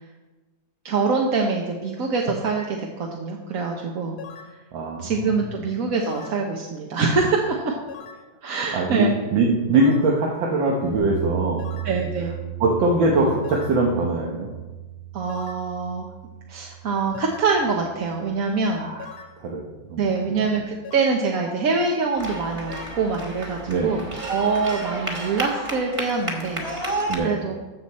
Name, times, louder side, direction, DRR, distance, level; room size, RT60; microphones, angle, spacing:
voice 1, 0.8-4.2 5.0-7.8 8.4-9.1 11.8-12.3 15.1-16.1 16.5-18.9 20.0-27.6, right 4 dB, 55° right, 0 dB, 1.3 m, -25 dB
sound 1, 4.2-4.6 6.0-6.4 7.9-8.3 9.7-10.1 11.6-12.0 13.4-13.8 15.3-15.7 17.1-17.5 19.0-19.4 20.8-21.2 22.7-22.9, left 7 dB, 65° left, 1.4 m, -40 dB
voice 2, 4.7-5.4 8.7-11.6 12.6-14.5 18.7-19.0 19.4-19.6 19.9-20.3 23.7-24.0 27.1-27.4, right 2 dB, 90° right, -2 dB, 1.9 m, -22 dB
sound 2, 10.9-19.0, right 12 dB, 75° right, 1.5 m, -36 dB
sound 3, 22.2-27.2, right 1 dB, 20° right, 1.3 m, -31 dB
14.0 x 7.0 x 4.2 m, 1.2 s
omnidirectional pair, 2.0 m